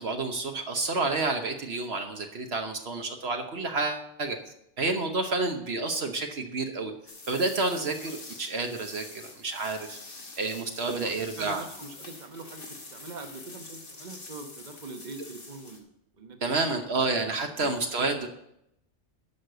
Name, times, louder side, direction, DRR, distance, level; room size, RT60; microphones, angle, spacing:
voice 1, 0.0-4.4 4.8-6.9 7.3-10.0 10.4-11.6 16.4-18.3, right 3 dB, 65° right, 4 dB, 1.2 m, -29 dB
sound 1, 7.1-15.8, left 3 dB, 80° left, 2.2 m, -46 dB
voice 2, 10.9-15.9 16.2-16.7 17.6-17.7, right 3 dB, 40° right, 5 dB, 1.2 m, -43 dB
11.0 x 6.5 x 6.7 m, 0.79 s
omnidirectional pair, 1.2 m